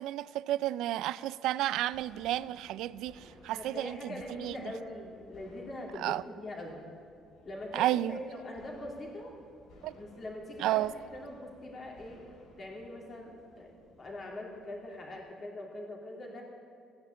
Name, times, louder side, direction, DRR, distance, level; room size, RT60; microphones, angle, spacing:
voice 1, 0.0-4.5 6.0-6.2 7.7-8.2 9.8-9.9 10.6-10.9, right 14 dB, 80° right, 0.4 m, -32 dB
sound 1, 1.9-15.3, left 1 dB, 75° left, 4.6 m, -59 dB
voice 2, 3.5-6.8 7.4-9.3 9.9-12.2 12.6-13.7 14.0-16.4, left 1 dB, 30° left, 3.0 m, -42 dB
15.5 x 10.0 x 8.2 m
cardioid pair, 150°, 0 cm